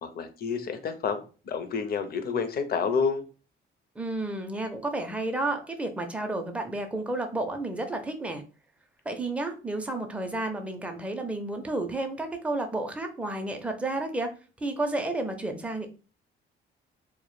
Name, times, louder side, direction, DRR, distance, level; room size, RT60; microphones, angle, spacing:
voice 1, 0.0-3.2, left 5 dB, 50° left, 9 dB, 0.5 m, -29 dB
voice 2, 4.0-8.4 9.1-14.3 14.6-15.9, right 2 dB, 5° right, 5 dB, 0.4 m, -31 dB
2.1 x 2.1 x 3.0 m, 0.36 s
cardioid pair, 90°, 20 cm